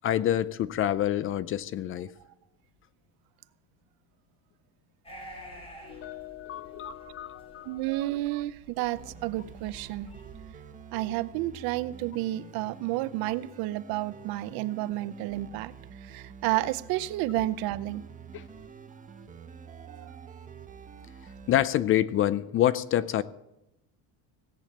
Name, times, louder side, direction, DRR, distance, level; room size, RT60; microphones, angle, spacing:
voice 1, 0.0-2.1 5.8-7.8 18.3-18.4 21.5-23.2, left 12 dB, 35° left, 0.4 m, -27 dB
sound 1, 5.0-10.4, right 1 dB, 15° left, 6.3 m, -49 dB
voice 2, 7.7-10.1 10.9-15.7 16.0-18.0 19.7-20.3, right 16 dB, 65° right, 0.7 m, -31 dB
sound 2, 8.9-21.7, right 7 dB, 20° right, 1.0 m, -47 dB
17.0 x 8.4 x 7.2 m
cardioid pair, 155°, 40 cm